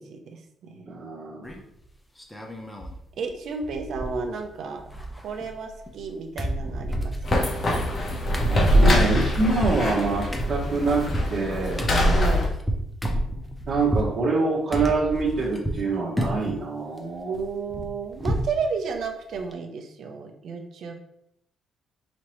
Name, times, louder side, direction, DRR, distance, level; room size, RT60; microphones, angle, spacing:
voice 1, 0.0-0.9 3.2-4.8 5.2-7.5 12.1-12.5 17.3-20.9, right 5 dB, 70° right, 5 dB, 0.6 m, -32 dB
voice 2, 0.9-1.6 8.5-11.8 13.7-17.3, right 3 dB, 55° right, -8 dB, 1.2 m, -25 dB
sound 1, 1.4-1.8 2.2-3.0 3.3-3.4 3.6-4.5 4.7-6.1 6.4-14.1 14.7-15.9 16.2-16.6 17.0-18.6 18.9-19.0 19.3-19.5, right 1 dB, 10° left, 0.7 m, -30 dB
sound 2, 7.2-12.5, equal, 40° left, 1.0 m, -23 dB
5.1 x 2.8 x 3.1 m, 0.75 s
cardioid pair, 90°, 0 cm